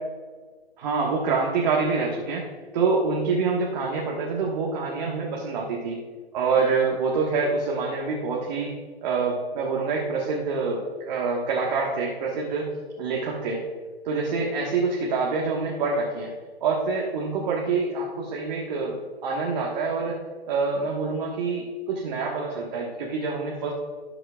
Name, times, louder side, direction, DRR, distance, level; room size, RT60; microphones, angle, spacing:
voice 1, 0.8-2.5 2.7-6.0 6.3-8.7 9.0-12.7 13.0-13.6 14.0-16.3 16.6-20.2 20.5-23.7, right 4 dB, 40° right, -3 dB, 1.6 m, -26 dB
18.5 x 7.8 x 2.4 m, 1.5 s
figure-of-eight pair, 130°, 32 cm